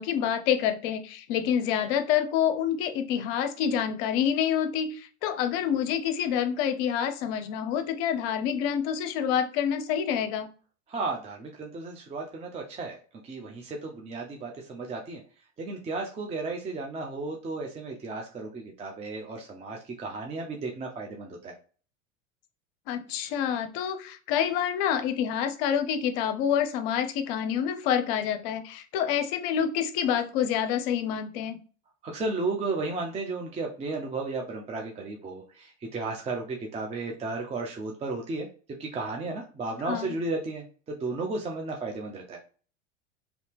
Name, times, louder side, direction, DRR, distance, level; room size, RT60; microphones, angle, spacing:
voice 1, 0.0-10.5 22.9-31.6 39.9-40.2, left 9 dB, 50° left, 8 dB, 0.6 m, -27 dB
voice 2, 10.9-13.0 13.2-15.2 15.6-21.5 32.0-38.5 38.8-42.4, right 3 dB, 15° right, 1 dB, 0.5 m, -34 dB
2.9 x 2.7 x 3.4 m, 0.39 s
hypercardioid pair, 90°, 38 cm